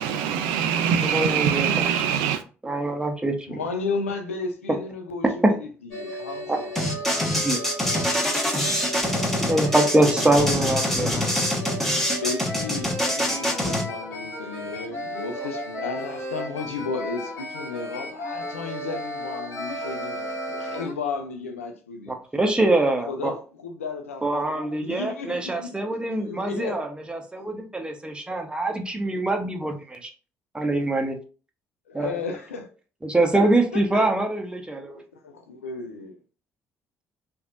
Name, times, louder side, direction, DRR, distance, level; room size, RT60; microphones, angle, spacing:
voice 1, 0.0-2.4, right 8 dB, 70° right, 0.4 m, -23 dB
voice 2, 1.0-2.0 2.6-3.6 5.4-5.5 6.5-6.6 7.3-7.6 9.2-11.2 13.3-13.5 15.4-15.5 22.1-23.3 24.2-30.1 30.5-31.2 31.9-32.2 33.0-35.0, right 2 dB, 15° right, 0.8 m, -24 dB
voice 3, 3.5-5.6 6.0-6.7 12.2-22.1 22.8-25.7 26.1-26.8 31.9-32.7 33.3-33.4 33.7-34.1 34.9-36.2, left 4 dB, 90° left, 0.4 m, -34 dB
sound 1, 5.9-20.9, equal, 60° left, 1.6 m, -34 dB
sound 2, 6.8-13.8, left 1 dB, 5° left, 1.1 m, -25 dB
3.3 x 2.5 x 2.4 m
hypercardioid pair, 50°, 7 cm